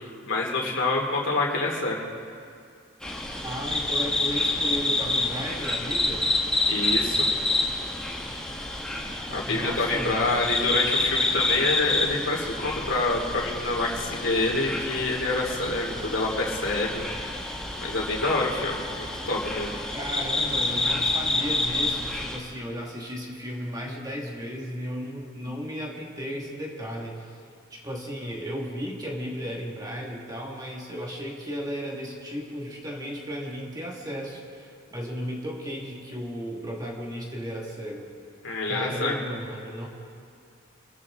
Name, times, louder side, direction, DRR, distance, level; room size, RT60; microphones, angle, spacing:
voice 1, 0.0-2.0 6.7-7.3 9.3-17.0 17.8-19.7 38.4-39.2, left 2 dB, 70° left, -1 dB, 2.7 m, -27 dB
sound 1, 3.0-22.4, left 2 dB, 5° left, 1.5 m, -28 dB
voice 2, 3.4-6.3 9.4-10.4 19.9-27.4 27.7-38.1 38.7-39.9, equal, 20° right, -2 dB, 1.8 m, -35 dB
26.0 x 15.0 x 3.7 m, 2.3 s
head